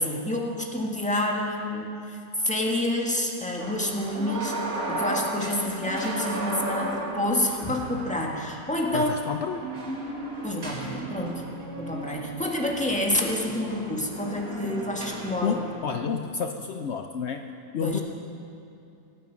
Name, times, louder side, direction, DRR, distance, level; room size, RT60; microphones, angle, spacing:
voice 1, 0.0-9.1 10.4-15.6 17.8-18.0, left 1 dB, 5° left, -1 dB, 1.5 m, -28 dB
sound 1, 3.6-15.7, right 2 dB, 50° right, 2.5 m, -35 dB
voice 2, 8.9-9.6 15.4-17.4 17.7-18.0, left 6 dB, 75° left, 6 dB, 0.6 m, -30 dB
24.5 x 9.1 x 6.2 m, 2.6 s
omnidirectional pair, 2.0 m